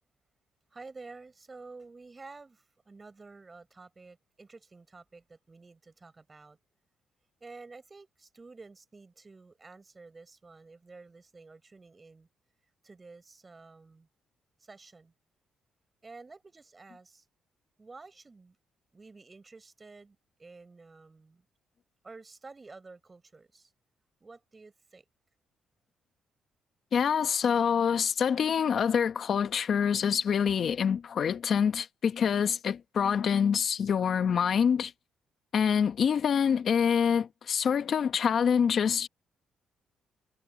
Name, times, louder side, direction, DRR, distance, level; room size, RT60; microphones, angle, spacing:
voice 1, 0.7-6.6 7.4-12.3 12.8-14.1 14.6-15.1 16.0-17.2 17.8-18.6 18.9-21.4 22.0-23.7 24.2-25.0, right 3 dB, 25° right, 6.0 m, -51 dB
voice 2, 26.9-34.9 35.5-39.1, left 7 dB, 55° left, 1.2 m, -26 dB
cardioid pair, 90°, 0 cm